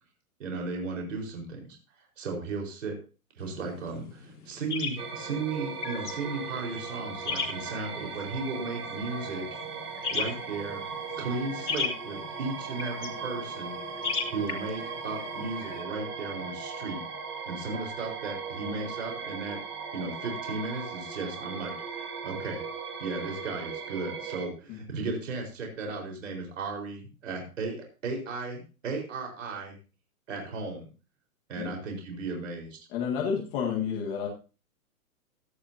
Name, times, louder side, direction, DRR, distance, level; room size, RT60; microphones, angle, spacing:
voice 1, 0.4-3.0 3.3-9.5 10.1-10.8 11.2-13.7 14.3-17.0 17.4-19.6 19.9-22.6 23.0-29.7 30.3-30.9 31.5-32.8, right 3 dB, 55° right, 1 dB, 4.9 m, -35 dB
sound 1, 3.4-15.8, left 5 dB, 85° left, 3.3 m, -38 dB
sound 2, 5.0-24.5, right 5 dB, 90° right, 2.6 m, -38 dB
voice 2, 32.9-34.3, left 7 dB, 15° left, -2 dB, 1.7 m, -30 dB
17.0 x 11.5 x 2.8 m, 0.33 s
hypercardioid pair, 175°, 44 cm